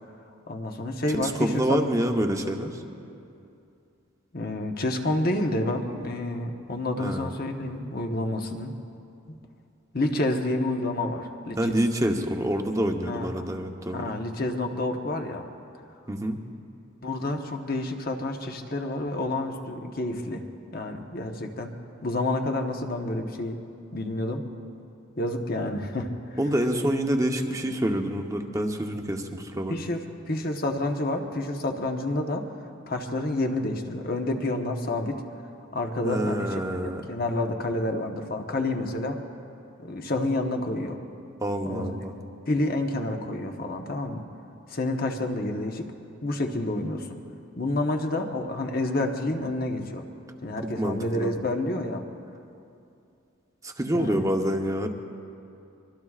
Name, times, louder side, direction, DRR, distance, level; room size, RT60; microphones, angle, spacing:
voice 1, 0.5-1.8 4.3-8.7 9.3-9.4 9.9-11.6 13.0-13.5 13.9-15.4 17.0-20.4 20.7-21.8 22.0-23.6 23.9-24.5 25.2-26.4 29.7-30.0 30.3-32.5 32.9-35.2 35.7-39.2 39.8-41.0 41.7-42.0 42.5-44.2 44.7-45.9 46.2-47.2 47.6-50.0 50.4-52.0 53.9-54.2, left 2 dB, 45° left, 3 dB, 1.1 m, -29 dB
voice 2, 1.1-2.8 7.0-7.3 11.6-14.1 16.1-16.4 26.4-29.8 36.0-37.0 41.4-42.2 50.8-51.3 53.6-54.9, right 1 dB, 15° right, 3 dB, 0.9 m, -27 dB
25.0 x 23.0 x 2.4 m, 2.6 s
head